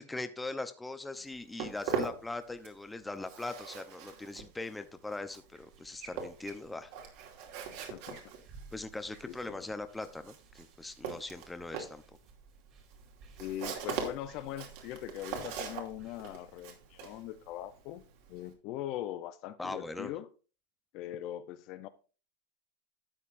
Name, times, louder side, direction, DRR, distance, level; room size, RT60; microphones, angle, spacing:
voice 1, 0.0-6.9 8.7-12.0 19.6-20.1, left 2 dB, 5° left, 0.8 m, -40 dB
Walk footsteps, 1.1-2.9 3.1-18.5, right 7 dB, 60° right, 2.7 m, -41 dB
sound 1, 5.4-17.4, right 5 dB, 40° right, 2.8 m, -56 dB
voice 2, 7.9-8.2 9.3-9.7 13.4-18.0 18.3-20.3 20.9-21.9, left 12 dB, 45° left, 0.7 m, -41 dB
12.5 x 8.2 x 2.6 m
supercardioid pair, 150°, 0 cm